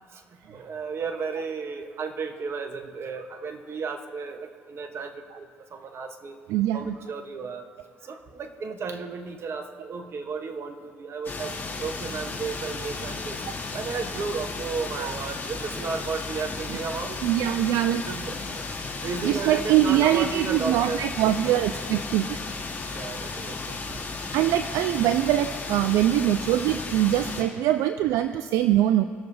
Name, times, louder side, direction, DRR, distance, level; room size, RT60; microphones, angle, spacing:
voice 1, 0.5-5.5 5.7-6.4 6.7-7.7 8.0-13.4 13.7-17.2 18.1-18.7 19.0-21.5 22.9-23.8, right 5 dB, 50° right, 7 dB, 1.0 m, -34 dB
voice 2, 6.5-6.9 15.0-15.1 17.2-18.0 19.2-22.4 24.3-29.0, right 12 dB, 70° right, 10 dB, 0.4 m, -23 dB
sound 1, 11.2-27.4, left 4 dB, 35° left, 2.4 m, -34 dB
19.0 x 6.8 x 2.7 m, 2.2 s
hypercardioid pair, 60°, 6 cm